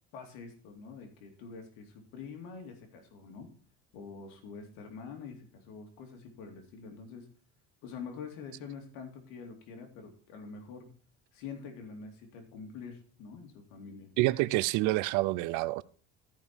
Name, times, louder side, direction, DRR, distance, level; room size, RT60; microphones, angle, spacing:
voice 1, 0.1-3.5 3.9-7.2 7.8-10.9 11.3-14.1, left 5 dB, 75° left, 2.6 m, -46 dB
voice 2, 14.2-15.8, right 19 dB, 65° right, 0.5 m, -27 dB
14.0 x 5.5 x 4.4 m
cardioid pair, 130°, 32 cm